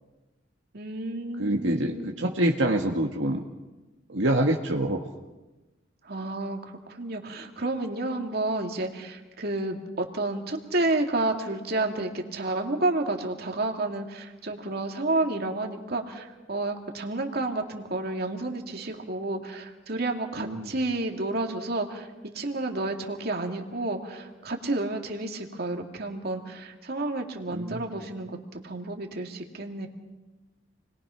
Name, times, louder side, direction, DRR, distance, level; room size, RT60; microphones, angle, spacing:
voice 1, 0.7-2.1 6.1-22.1 22.3-29.9, right 2 dB, 55° right, 2 dB, 2.6 m, -30 dB
voice 2, 1.4-3.4 4.1-5.1 20.4-20.7 27.5-27.8, right 1 dB, 80° right, 1 dB, 1.8 m, -26 dB
29.5 x 22.0 x 5.9 m, 1.1 s
head